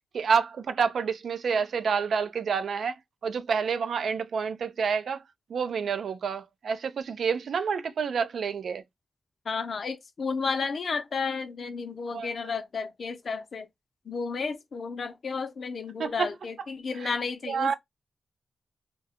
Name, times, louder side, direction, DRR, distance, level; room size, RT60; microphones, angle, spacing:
voice 1, 0.1-5.2 5.5-8.8 12.1-12.3 16.0-16.3 17.0-17.1 17.5-17.7, right 6 dB, 80° right, 0.3 m, -28 dB
voice 2, 9.4-13.7 14.1-17.7, left 5 dB, 60° left, 0.5 m, -32 dB
2.7 x 2.2 x 3.4 m
wide cardioid pair, 110°, 0 cm